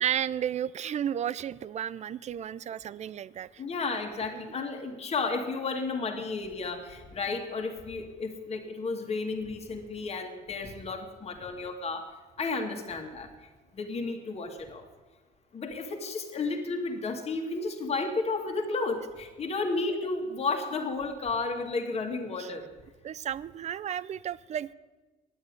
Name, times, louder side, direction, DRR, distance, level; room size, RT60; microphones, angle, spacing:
voice 1, 0.0-3.6 4.3-4.6 22.4-22.5 23.0-24.7, right 9 dB, 40° right, 19 dB, 0.5 m, -33 dB
voice 2, 3.6-12.1 12.4-13.3 13.8-14.8 15.5-22.7, left 3 dB, 40° left, 4 dB, 2.0 m, -32 dB
9.9 x 9.1 x 9.6 m, 1.2 s
cardioid pair, 110°, 17 cm